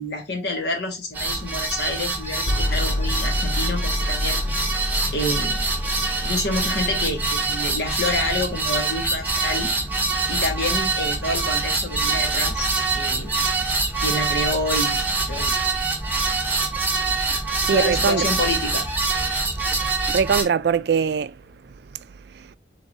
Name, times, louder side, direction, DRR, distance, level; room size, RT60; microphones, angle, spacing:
voice 1, 0.0-4.4 5.1-5.6 6.2-9.7 10.3-12.7 12.9-13.3 14.0-15.0 15.3-15.6 17.3-17.4 17.7-18.8, left 2 dB, 75° left, 1.5 m, -28 dB
sound 1, 1.1-20.4, right 3 dB, 10° right, 1.0 m, -25 dB
sound 2, 2.4-18.4, left 1 dB, 30° left, 0.4 m, -32 dB
voice 2, 17.6-18.3 19.7-21.3, right 6 dB, 65° right, 0.3 m, -22 dB
4.5 x 3.7 x 2.7 m
head